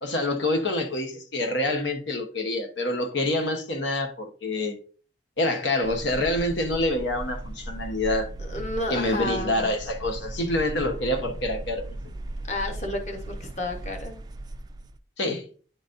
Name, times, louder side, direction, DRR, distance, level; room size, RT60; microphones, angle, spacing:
voice 1, 0.0-4.8 5.4-8.3 8.9-12.0 15.2-15.5, left 1 dB, 90° left, 1.0 m, -26 dB
sound 1, 5.8-15.0, right 1 dB, 25° right, 0.3 m, -37 dB
voice 2, 8.4-9.7 12.4-14.2, left 2 dB, 40° left, 1.1 m, -31 dB
10.0 x 4.0 x 2.6 m
head